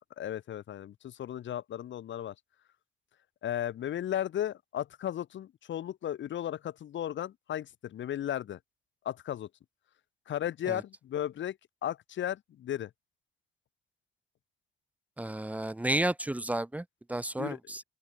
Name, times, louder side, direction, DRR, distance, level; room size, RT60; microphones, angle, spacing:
voice 1, 0.2-2.3 3.4-8.6 9.0-9.5 10.3-11.6 11.8-12.9 17.4-17.7, left 11 dB, 70° left, 4.2 m, -35 dB
voice 2, 15.2-17.8, right 1 dB, 5° right, 1.0 m, -32 dB
open air
cardioid pair, 90°, 20 cm